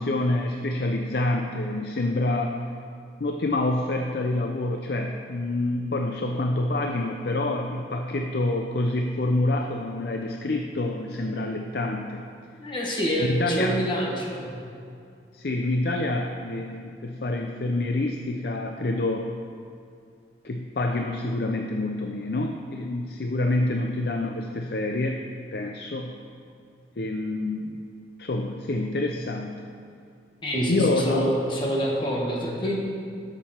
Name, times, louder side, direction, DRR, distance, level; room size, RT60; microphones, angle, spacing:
voice 1, 0.0-2.6 3.2-12.2 13.2-13.8 15.3-19.3 20.4-25.2 25.5-26.1 27.0-27.8 28.2-29.6 30.7-31.4, left 2 dB, 60° left, 3 dB, 0.5 m, -27 dB
voice 2, 12.6-14.6 30.4-32.8, equal, 25° left, -3 dB, 1.5 m, -26 dB
11.5 x 6.9 x 4.4 m, 2.4 s
head